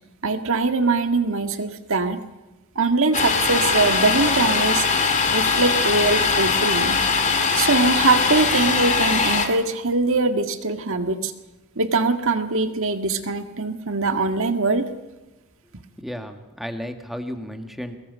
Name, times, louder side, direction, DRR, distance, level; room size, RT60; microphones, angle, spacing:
voice 1, 0.2-2.2 2.8-4.8 5.3-7.0 7.5-11.3 11.8-14.9, right 3 dB, 65° right, 7 dB, 1.9 m, -22 dB
Domestic sounds home sounds, 3.1-9.5, left 5 dB, 35° left, 2.4 m, -21 dB
voice 2, 16.0-18.0, equal, ahead, 5 dB, 1.9 m, -33 dB
23.5 x 21.0 x 5.5 m, 1.1 s
head